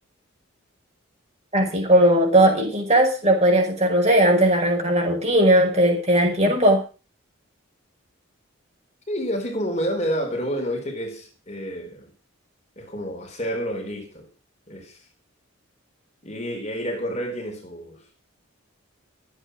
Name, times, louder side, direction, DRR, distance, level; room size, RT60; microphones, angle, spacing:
voice 1, 1.5-6.8, right 1 dB, 30° right, 5.4 m, -18 dB
voice 2, 9.1-12.1 12.8-14.3 14.7-15.0 16.2-18.0, equal, 35° left, 4.2 m, -29 dB
14.5 x 8.6 x 6.2 m
head